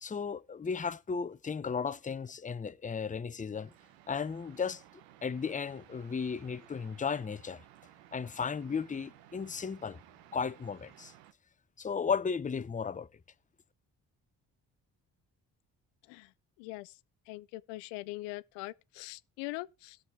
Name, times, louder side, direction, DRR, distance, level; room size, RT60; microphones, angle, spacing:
voice 1, 0.0-3.7 4.1-4.8 5.2-7.6 8.1-10.0 10.3-11.1 11.8-13.1, left 6 dB, 20° left, 0.6 m, -35 dB
sound 1, 3.5-11.3, right 13 dB, 85° right, 0.9 m, -58 dB
voice 2, 16.6-17.0 17.3-20.0, left 20 dB, 85° left, 0.6 m, -42 dB
18.5 x 6.3 x 3.6 m
hypercardioid pair, 50°, 42 cm